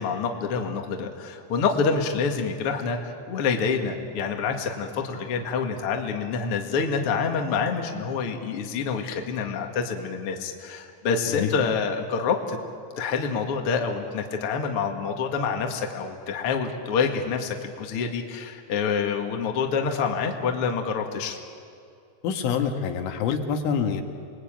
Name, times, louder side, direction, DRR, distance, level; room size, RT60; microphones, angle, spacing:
voice 1, 0.0-12.6 13.0-21.4, left 5 dB, 50° left, 3 dB, 1.8 m, -27 dB
voice 2, 22.2-24.0, left 7 dB, 80° left, 5 dB, 4.2 m, -26 dB
29.0 x 21.5 x 8.9 m, 2.5 s
omnidirectional pair, 5.5 m